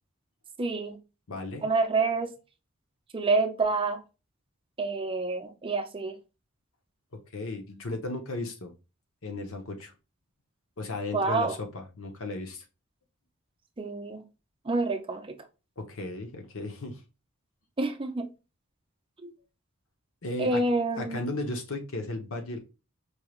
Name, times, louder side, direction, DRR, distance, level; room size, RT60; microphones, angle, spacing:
voice 1, 0.6-1.0 1.6-2.3 3.1-4.0 4.8-6.2 11.1-11.6 13.8-14.2 14.7-15.4 17.8-18.3 19.2-19.3 20.4-21.2, right 3 dB, 25° right, 0.5 m, -27 dB
voice 2, 1.3-1.7 7.3-8.7 9.2-9.9 10.8-12.6 15.8-17.0 20.2-20.6 21.0-22.6, left 2 dB, 65° left, 1.0 m, -35 dB
4.6 x 3.2 x 2.3 m
head